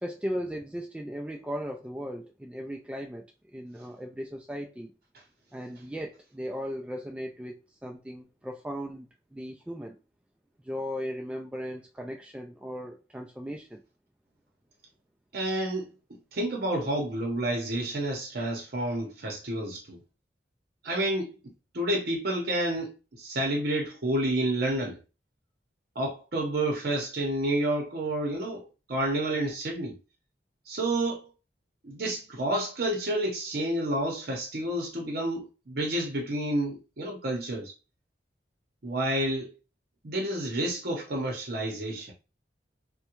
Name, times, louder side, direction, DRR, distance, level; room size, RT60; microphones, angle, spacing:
voice 1, 0.0-3.3 3.5-4.9 5.5-10.0 10.6-13.8, equal, 5° right, 0.3 m, -37 dB
voice 2, 15.3-15.9 16.3-20.0 20.8-21.3 21.7-22.9 23.2-25.0 26.0-30.0 30.7-31.3 31.8-37.7 38.8-39.5 40.0-42.1, right 1 dB, 60° right, 0.8 m, -29 dB
3.5 x 2.1 x 2.9 m
head